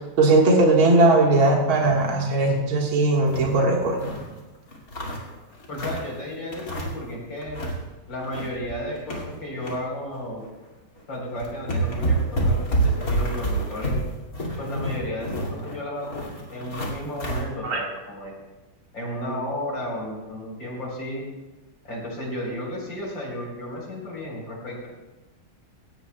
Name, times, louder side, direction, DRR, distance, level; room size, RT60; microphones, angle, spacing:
voice 1, 0.2-4.0 17.6-17.8, right 2 dB, 75° right, -1 dB, 2.5 m, -19 dB
sound 1, 1.8-2.2 2.6-2.7 3.0-4.3 4.7-6.1 6.5-7.1 7.4-7.8 8.1-9.8 10.1-10.3 11.0-11.1 11.4-17.4, right 2 dB, 45° left, 2.7 m, -28 dB
voice 2, 5.7-7.6 8.0-10.4 11.1-14.0 14.6-18.3 18.9-21.2 21.8-24.9, left 1 dB, 60° left, -2 dB, 4.8 m, -33 dB
17.5 x 17.0 x 2.3 m, 1.1 s
omnidirectional pair, 2.3 m